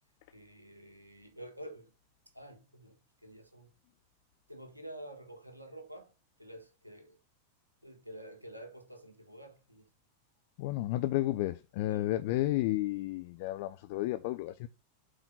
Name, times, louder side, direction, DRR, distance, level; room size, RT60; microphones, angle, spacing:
voice 1, 0.3-1.9 2.3-3.0 3.2-3.7 4.5-6.1 6.4-7.2 7.8-9.9 11.8-12.1, right 1 dB, 85° right, 1.5 m, -49 dB
voice 2, 10.6-14.7, left 16 dB, 50° left, 0.4 m, -32 dB
7.9 x 3.9 x 5.6 m
figure-of-eight pair, 90°, 0 cm